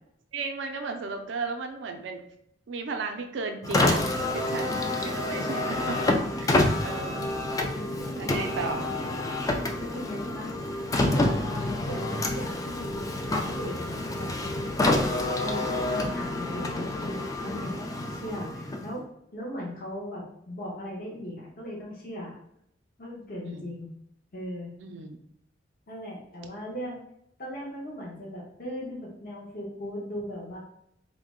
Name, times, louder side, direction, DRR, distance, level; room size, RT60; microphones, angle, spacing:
voice 1, 0.3-2.2 2.7-7.3 8.2-8.9 23.4-23.7 24.8-25.2, right 4 dB, 80° right, 5 dB, 0.4 m, -35 dB
Car, 3.6-19.0, left 2 dB, 20° left, 0.3 m, -28 dB
voice 2, 7.6-8.6 9.7-10.5 11.0-14.3 15.4-19.1 19.3-22.4 23.0-23.9 24.3-24.7 25.9-27.0 27.4-30.6, equal, 50° left, -4 dB, 0.9 m, -38 dB
3.6 x 2.1 x 3.6 m, 0.75 s
head